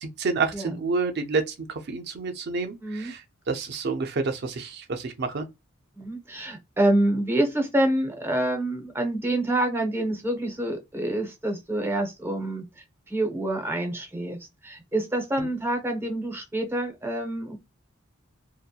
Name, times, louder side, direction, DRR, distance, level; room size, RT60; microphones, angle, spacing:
voice 1, 0.0-3.2 3.5-5.5 15.4-15.5, right 4 dB, 55° right, 0.5 m, -29 dB
voice 2, 2.8-3.1 6.0-14.4 14.6-17.6, right 1 dB, 10° right, 0.6 m, -27 dB
2.7 x 2.1 x 2.2 m
head